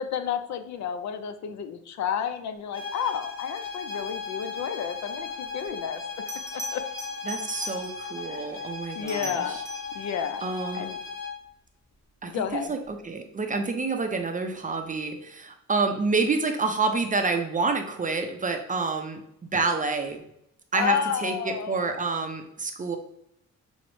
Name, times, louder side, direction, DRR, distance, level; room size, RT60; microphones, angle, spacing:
voice 1, 0.0-6.0 6.7-6.8 8.3-8.5 8.9-9.6 9.9-10.4 10.7-11.0 12.3-12.8 20.7-22.2, left 8 dB, 65° left, 9 dB, 0.5 m, -31 dB
sound 1, 2.7-11.4, left 5 dB, 40° left, 1.5 m, -37 dB
Bell, 5.7-5.8 6.3-8.2 8.9-10.0 12.7-12.9, equal, 10° left, 0.7 m, -40 dB
voice 2, 7.3-9.6 10.4-10.9 12.2-19.2 19.5-20.2 20.7-23.0, right 4 dB, 25° right, 5 dB, 0.5 m, -28 dB
6.1 x 2.1 x 3.0 m, 0.74 s
cardioid pair, 105°, 30 cm